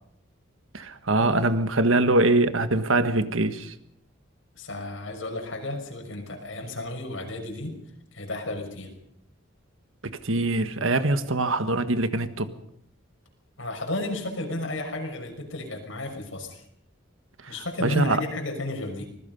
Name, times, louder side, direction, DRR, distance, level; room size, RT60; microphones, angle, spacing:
voice 1, 0.7-3.7 10.0-12.5 17.4-17.5 17.8-18.2, right 2 dB, 85° right, 10 dB, 1.5 m, -23 dB
voice 2, 1.4-1.8 4.5-7.7 8.1-8.9 13.6-16.6 17.5-19.1, left 2 dB, 75° left, 3 dB, 6.0 m, -33 dB
25.5 x 20.5 x 5.4 m, 0.72 s
head